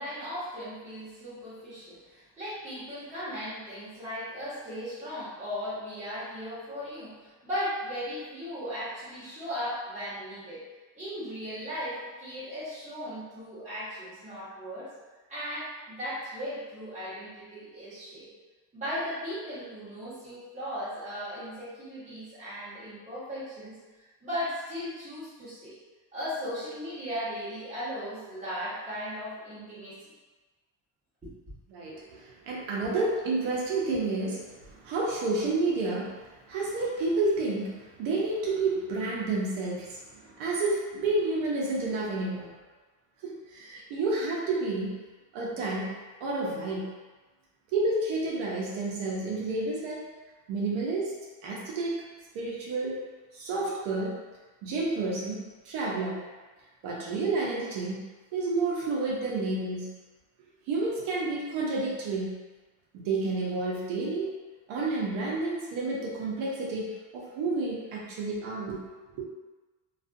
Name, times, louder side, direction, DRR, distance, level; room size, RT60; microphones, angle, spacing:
voice 1, 0.0-7.2 7.4-10.6 11.0-14.9 15.3-18.3 18.7-23.8 24.2-25.7 26.1-30.0 31.2-31.3, equal, 15° right, -12 dB, 1.2 m, -37 dB
voice 2, 31.7-36.1 36.5-42.5 43.2-44.9 45.3-45.9 46.2-46.9 47.7-50.1 50.5-51.1 51.4-52.0 52.3-53.0 53.3-54.2 54.6-56.2 56.8-58.0 58.3-59.9 60.7-62.4 62.9-64.3 64.7-66.9 67.1-68.9 69.1-69.3, right 3 dB, 80° right, -4 dB, 0.7 m, -30 dB
2.5 x 2.4 x 2.5 m, 1.3 s
cardioid pair, 165°, 46 cm